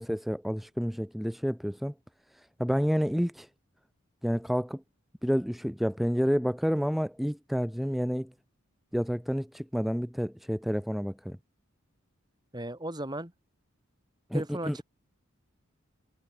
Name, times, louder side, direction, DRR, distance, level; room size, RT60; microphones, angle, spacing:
voice 1, 0.0-1.9 2.3-3.5 4.2-4.8 5.2-8.3 8.9-11.4 14.3-14.8, equal, ahead, 1.8 m, -29 dB
voice 2, 12.5-13.3 14.3-14.8, right 1 dB, 20° right, 6.9 m, -35 dB
head